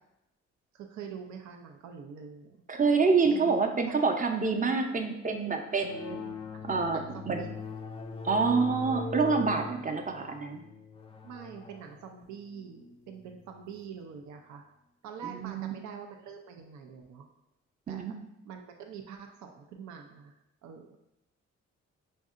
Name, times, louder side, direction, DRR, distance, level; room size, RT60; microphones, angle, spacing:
voice 1, 0.7-2.6 3.2-3.5 3.9-4.0 6.5-6.7 6.9-7.5 11.2-14.6 15.0-17.3 17.9-18.0 18.4-20.3 20.6-21.0, right 7 dB, 75° right, 4 dB, 0.5 m, -45 dB
voice 2, 2.7-6.2 6.6-7.4 8.2-10.6 15.2-15.8 17.9-18.2, right 4 dB, 30° right, 4 dB, 0.6 m, -27 dB
sound 1, 5.8-13.9, left 4 dB, 20° left, 0.3 m, -42 dB
5.2 x 2.6 x 2.4 m, 0.87 s
supercardioid pair, 60°, 29 cm